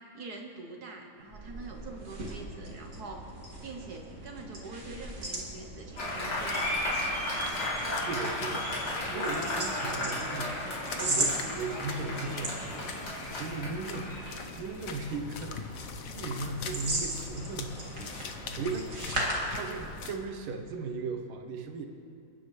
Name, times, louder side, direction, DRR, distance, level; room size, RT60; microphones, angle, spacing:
voice 1, 0.0-3.3 3.6-7.2, right 3 dB, 55° right, 2 dB, 1.4 m, -45 dB
sound 1, 1.2-20.1, right 2 dB, 40° right, 2.6 m, -38 dB
Applause, 6.0-14.4, left 1 dB, 80° left, 4.1 m, -34 dB
sound 2, 6.1-20.2, left 5 dB, 60° left, 1.0 m, -44 dB
voice 2, 7.9-14.2 14.6-18.9 19.5-21.9, right 4 dB, 85° right, 5 dB, 1.8 m, -38 dB
29.0 x 9.8 x 3.2 m, 2.4 s
omnidirectional pair, 2.2 m